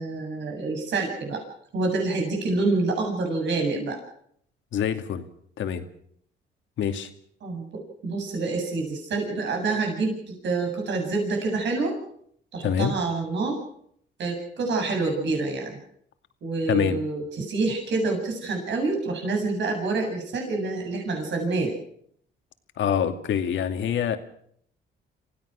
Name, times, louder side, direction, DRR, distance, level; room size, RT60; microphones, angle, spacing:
voice 1, 0.0-1.4 1.7-4.0 7.4-7.6 8.0-12.0 12.5-13.6 14.2-15.8 16.4-21.7, right 3 dB, 65° right, 3 dB, 7.9 m, -27 dB
voice 2, 4.7-5.2 5.6-5.8 6.8-7.1 12.6-13.0 16.7-17.0 22.8-24.2, left 8 dB, 70° left, 7 dB, 2.4 m, -25 dB
27.0 x 16.5 x 6.4 m, 0.66 s
cardioid pair, 90°, 20 cm